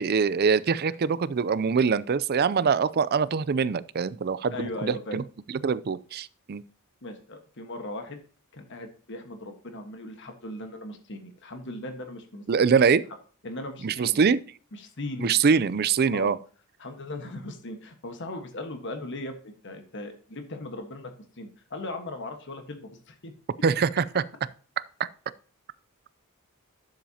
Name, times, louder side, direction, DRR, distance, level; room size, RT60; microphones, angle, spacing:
voice 1, 0.0-5.2 5.6-6.6 12.5-13.0 13.8-14.4 15.2-16.4 23.6-24.2 25.0-25.1, right 5 dB, 45° right, 0.4 m, -23 dB
voice 2, 4.5-5.2 7.0-8.2 8.5-12.4 13.4-14.2 14.7-15.3 16.1-16.3 16.8-23.3, left 2 dB, 55° left, 1.4 m, -38 dB
10.0 x 7.5 x 2.8 m
head